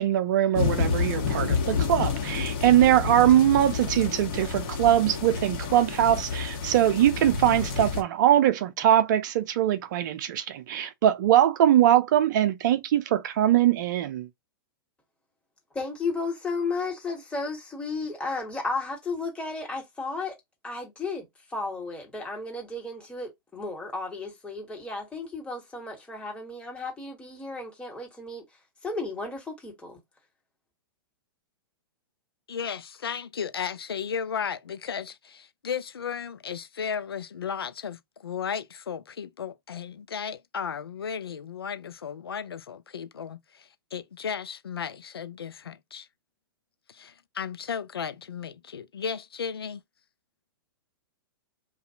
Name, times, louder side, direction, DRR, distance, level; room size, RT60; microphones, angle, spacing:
voice 1, 0.0-14.3, right 11 dB, 55° right, 0.5 m, -22 dB
sound 1, 0.5-8.0, left 5 dB, 50° left, 1.2 m, -29 dB
voice 2, 15.7-20.3 20.6-28.4 28.8-30.0, left 3 dB, 10° left, 1.4 m, -33 dB
voice 3, 32.5-46.1 46.9-49.8, left 7 dB, 80° left, 0.4 m, -35 dB
2.5 x 2.3 x 2.8 m
hypercardioid pair, 110°, 12 cm